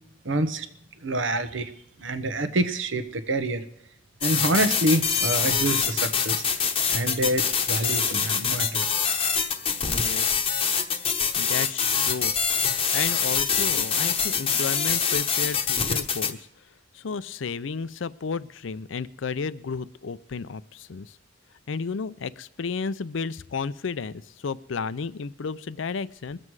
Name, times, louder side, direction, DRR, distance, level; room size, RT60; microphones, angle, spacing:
voice 1, 0.2-0.7 1.0-1.7 2.0-3.6 4.2-6.4 6.9-8.9, right 1 dB, 75° right, 11 dB, 1.0 m, -26 dB
sound 1, 4.2-16.3, left 6 dB, 30° left, 0.9 m, -25 dB
voice 2, 9.8-10.6 11.4-12.3 12.9-16.4 16.9-21.2 21.7-26.4, left 5 dB, 80° left, 16 dB, 0.5 m, -33 dB
22.5 x 7.6 x 4.7 m, 0.76 s
head